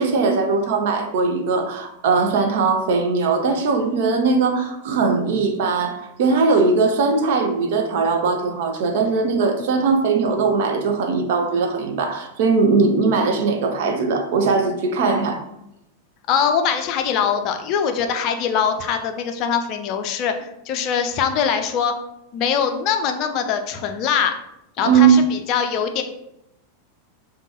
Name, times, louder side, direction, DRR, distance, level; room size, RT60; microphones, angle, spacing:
voice 1, 0.0-15.4 24.8-25.2, right 4 dB, 50° right, 4 dB, 0.6 m, -19 dB
voice 2, 16.3-21.9 22.3-24.3 24.8-26.0, left 7 dB, 40° left, 6 dB, 0.4 m, -22 dB
5.1 x 2.3 x 2.9 m, 0.83 s
figure-of-eight pair, 90°, 0 cm